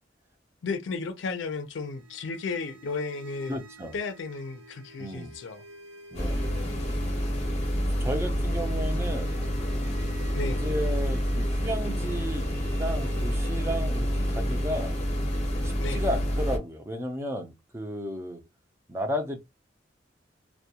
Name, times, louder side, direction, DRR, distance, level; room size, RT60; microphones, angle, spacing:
voice 1, 0.6-3.6 3.9-5.6 10.3-10.8 15.8-16.0, left 4 dB, 80° left, 0.5 m, -34 dB
sound 1, 1.5-16.5, right 4 dB, 85° right, 0.8 m, -51 dB
voice 2, 3.5-3.9 5.0-5.4 6.1-6.5 8.0-9.3 10.4-15.0 15.6-18.4 18.9-19.4, equal, 15° right, 0.4 m, -33 dB
sound 2, 6.1-16.6, equal, 35° left, 0.6 m, -28 dB
2.2 x 2.1 x 2.8 m
head